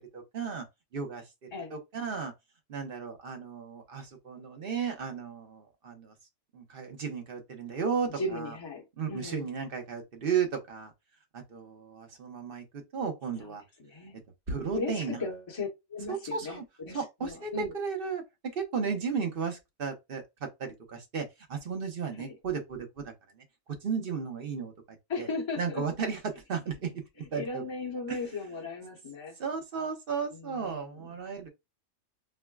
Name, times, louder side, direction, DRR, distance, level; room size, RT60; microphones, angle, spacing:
voice 1, 0.1-0.7 0.9-2.3 2.7-6.1 6.5-8.6 9.0-10.9 11.3-13.6 14.5-15.2 16.1-16.6 16.9-18.2 18.5-23.4 23.8-25.3 25.6-27.6 28.1-28.2 29.4-31.5, right 6 dB, 50° right, 1.0 m, -34 dB
voice 2, 8.2-9.5 13.8-14.2 14.7-17.7 22.2-22.3 25.1-25.8 27.2-29.4 30.3-31.1, left 3 dB, 25° left, 0.9 m, -37 dB
4.5 x 2.1 x 2.3 m
omnidirectional pair, 1.3 m